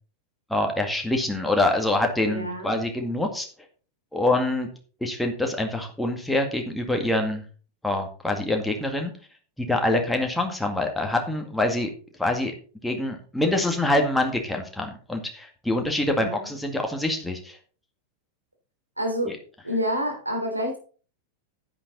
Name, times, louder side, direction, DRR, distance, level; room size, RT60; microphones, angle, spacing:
voice 1, 0.5-3.5 4.1-4.7 5.0-7.4 7.8-9.1 9.7-11.9 12.2-12.5 12.8-17.6, left 1 dB, 5° left, 2 dB, 2.0 m, -25 dB
voice 2, 2.2-2.7 16.0-16.5 19.0-19.3 19.6-20.8, equal, 85° right, 2 dB, 3.3 m, -28 dB
9.9 x 9.7 x 4.1 m, 0.40 s
figure-of-eight pair, 90°, 0 cm